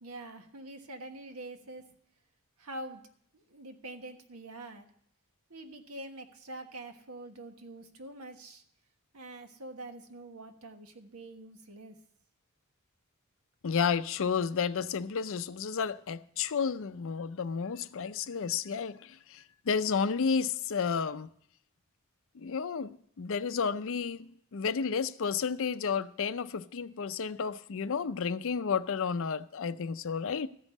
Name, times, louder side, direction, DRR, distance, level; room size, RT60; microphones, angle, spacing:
voice 1, 0.0-1.8 2.6-3.0 3.3-4.9 5.5-8.6 9.1-12.0, right 2 dB, 85° right, 1.4 m, -45 dB
voice 2, 13.6-21.3 22.3-30.5, left 6 dB, 65° left, 0.5 m, -32 dB
14.0 x 5.3 x 8.3 m
head